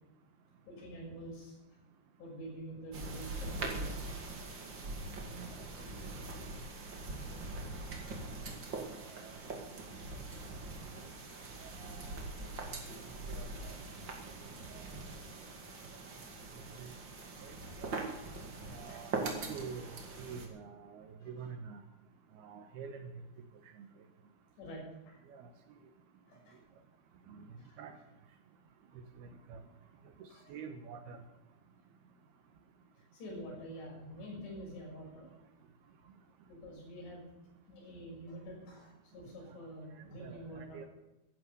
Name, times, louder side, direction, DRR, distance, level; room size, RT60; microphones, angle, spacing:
voice 1, 0.7-1.5 2.2-4.0 10.3-10.6 12.5-13.6 18.9-19.0 21.2-21.3 24.6-25.2 26.3-26.6 27.6-27.8 30.3-30.5 33.1-35.3 36.4-37.2 37.7-40.8, right 1 dB, 60° left, -3 dB, 8.4 m, -48 dB
sound 1, 2.9-20.5, right 3 dB, 45° right, 1.5 m, -42 dB
voice 2, 11.6-12.2 13.3-13.8 14.7-14.9 16.5-16.9 17.4-17.5 17.8-18.1 18.7-21.8 22.4-23.1 23.8-23.9 25.3-25.5 27.3-27.5 27.8-28.0 29.2-29.6 30.2-31.2 40.2-40.4 40.7-40.9, right 6 dB, 80° right, 7 dB, 2.3 m, -47 dB
14.5 x 11.5 x 6.8 m, 0.97 s
omnidirectional pair, 5.8 m